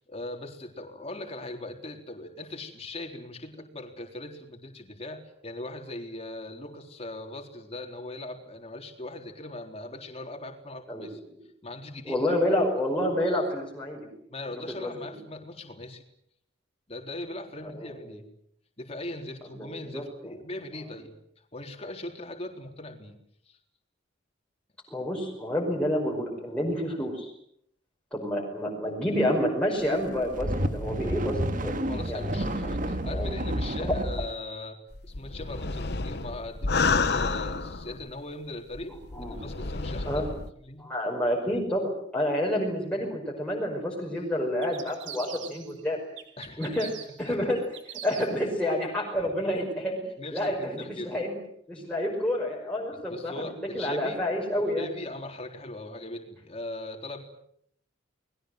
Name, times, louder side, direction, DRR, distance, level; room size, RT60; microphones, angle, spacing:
voice 1, 0.1-11.2 11.6-12.4 14.3-16.0 16.9-18.2 18.8-23.2 23.5-23.6 31.8-34.8 35.0-40.3 40.6-40.8 46.4-46.9 47.2-47.3 49.1-49.3 50.2-51.2 52.9-54.2 54.8-57.2, left 2 dB, 30° left, 3 dB, 4.0 m, -40 dB
voice 2, 12.1-14.1 14.7-15.1 17.6-18.1 19.4-20.0 24.9-27.3 28.1-31.8 32.1-32.3 33.1-33.4 33.8-33.9 39.1-39.4 40.1-40.3 40.8-46.0 46.6-46.9 47.2-47.6 47.9-50.0 50.3-51.4 51.7-53.4 53.7-54.9, left 1 dB, 5° left, -3 dB, 5.4 m, -29 dB
sound 1, 30.1-34.3, equal, 45° right, 2.0 m, -30 dB
sound 2, 34.9-38.1 38.7-40.5, left 4 dB, 55° left, 1.1 m, -30 dB
sound 3, 44.6-45.8 46.2-48.5, right 9 dB, 70° right, 3.2 m, -43 dB
29.5 x 21.5 x 7.9 m, 0.71 s
head